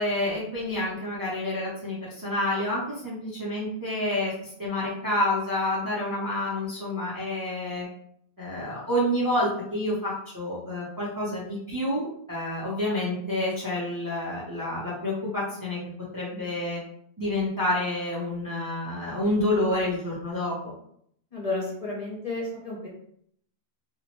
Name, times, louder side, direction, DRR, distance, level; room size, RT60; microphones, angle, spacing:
voice 1, 0.0-7.9 8.4-15.8 16.1-16.8 17.2-20.7, left 1 dB, 25° right, -7 dB, 0.5 m, -28 dB
voice 2, 21.3-22.9, left 2 dB, 40° left, -5 dB, 0.6 m, -32 dB
2.6 x 2.0 x 2.9 m, 0.68 s
omnidirectional pair, 1.1 m